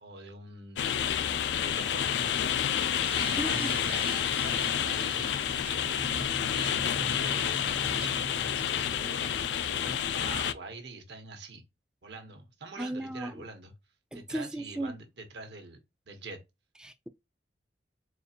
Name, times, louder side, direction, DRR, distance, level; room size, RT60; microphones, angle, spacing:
voice 1, 0.0-2.6 3.1-5.3 5.6-11.6 12.0-13.7 14.1-15.8 16.1-16.4, right 3 dB, 75° right, 1.0 m, -44 dB
sound 1, 0.8-10.5, left 9 dB, 80° left, 0.3 m, -29 dB
sound 2, 2.8-9.4, right 2 dB, 60° right, 0.6 m, -44 dB
voice 2, 3.4-3.7 12.8-13.4 14.1-14.9 16.8-17.1, right 1 dB, 5° right, 0.3 m, -35 dB
4.1 x 2.4 x 2.8 m
head